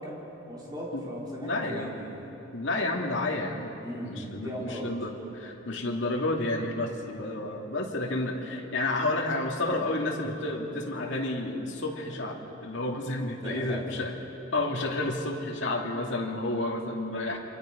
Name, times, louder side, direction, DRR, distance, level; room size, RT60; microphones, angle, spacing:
voice 1, 0.0-2.4 3.8-4.9 13.4-13.9, equal, 20° right, -5 dB, 4.5 m, -38 dB
voice 2, 1.4-1.9 2.5-3.7 4.0-14.1 14.5-17.4, left 2 dB, 65° left, 0 dB, 2.7 m, -30 dB
27.5 x 25.0 x 5.3 m, 3.0 s
head